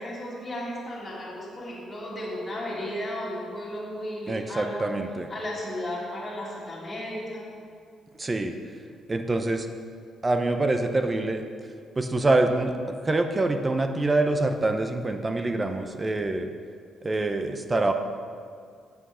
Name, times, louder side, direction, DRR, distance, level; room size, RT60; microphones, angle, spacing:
voice 1, 0.0-4.9 5.3-7.5, left 1 dB, 20° left, -8 dB, 2.7 m, -34 dB
voice 2, 4.3-5.3 8.2-8.5 9.1-9.7 10.2-11.4 12.0-16.5 17.0-17.9, right 2 dB, 25° right, 6 dB, 0.7 m, -25 dB
8.2 x 7.8 x 5.0 m, 2.2 s
cardioid pair, 90°, 0 cm